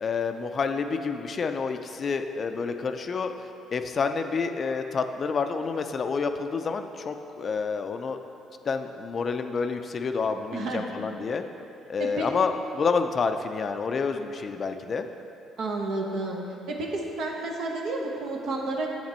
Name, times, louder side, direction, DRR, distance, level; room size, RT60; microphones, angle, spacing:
voice 1, 0.0-3.3 3.7-8.2 8.7-11.4 11.9-15.1, left 5 dB, 45° left, 7 dB, 0.4 m, -28 dB
voice 2, 10.5-10.9 12.0-12.3 15.6-16.4 16.7-18.9, right 2 dB, 70° right, -1 dB, 0.8 m, -31 dB
7.4 x 5.9 x 4.3 m, 2.8 s
supercardioid pair, 70°, 0 cm